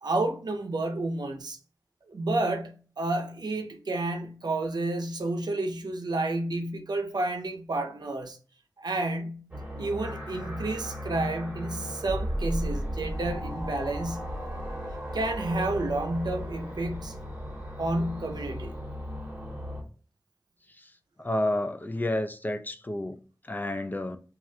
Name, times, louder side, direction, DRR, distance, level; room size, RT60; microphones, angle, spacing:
voice 1, 0.0-1.6 2.1-8.4 8.8-9.5 9.8-14.3 15.1-17.2 17.8-18.7, right 2 dB, 80° right, 0.5 m, -30 dB
sound 1, 9.5-19.8, equal, 15° right, 1.3 m, -35 dB
voice 2, 21.2-24.2, left 1 dB, 25° left, 0.4 m, -31 dB
2.7 x 2.4 x 3.1 m
wide cardioid pair, 55°, 7 cm